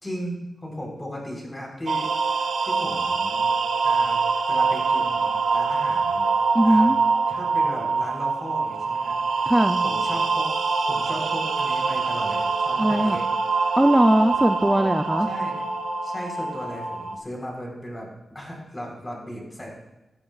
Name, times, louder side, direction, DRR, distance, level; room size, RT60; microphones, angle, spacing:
voice 1, 0.0-3.5 3.8-4.2 4.5-6.3 6.6-6.9 7.3-9.5 9.8-10.5 10.9-13.3 15.2-15.6 16.0-19.7, equal, 20° left, -1 dB, 3.7 m, -36 dB
sound 1, 1.9-17.2, right 4 dB, 85° right, 1.0 m, -24 dB
voice 2, 6.5-7.0 9.5-9.8 12.8-13.2 13.8-15.3, right 1 dB, 10° right, 6 dB, 0.5 m, -19 dB
16.0 x 12.0 x 2.4 m, 0.99 s
wide cardioid pair, 95°, 0 cm